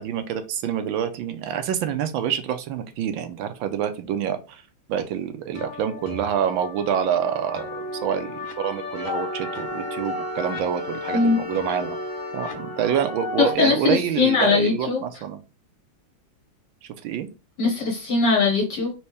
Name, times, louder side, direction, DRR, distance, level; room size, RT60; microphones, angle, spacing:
voice 1, 0.0-4.6 4.9-12.0 12.3-15.4 17.0-17.3, right 9 dB, 80° right, 8 dB, 1.4 m, -27 dB
sound 1, 5.5-13.5, left 3 dB, 80° left, 1.6 m, -34 dB
Wind instrument woodwind instrument, 8.9-13.7, left 1 dB, 45° left, 0.9 m, -37 dB
voice 2, 13.4-15.0 17.6-18.9, left 5 dB, 60° left, -2 dB, 1.6 m, -21 dB
4.3 x 3.1 x 3.3 m, 0.30 s
omnidirectional pair, 2.2 m